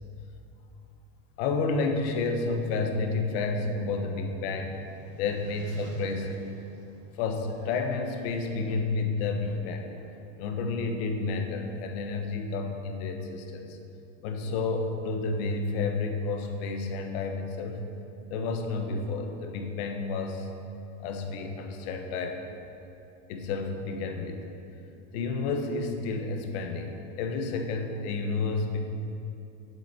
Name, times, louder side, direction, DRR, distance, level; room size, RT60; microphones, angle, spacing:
voice 1, 1.4-4.7 5.2-6.5 7.1-9.9 10.4-13.8 14.2-17.8 18.3-20.5 21.0-22.4 23.3-24.4 25.1-28.8, left 3 dB, 55° left, 4 dB, 1.2 m, -30 dB
sound 1, 3.0-7.7, right 1 dB, 65° right, 1.8 m, -52 dB
8.3 x 7.8 x 6.0 m, 2.8 s
supercardioid pair, 155°, 36 cm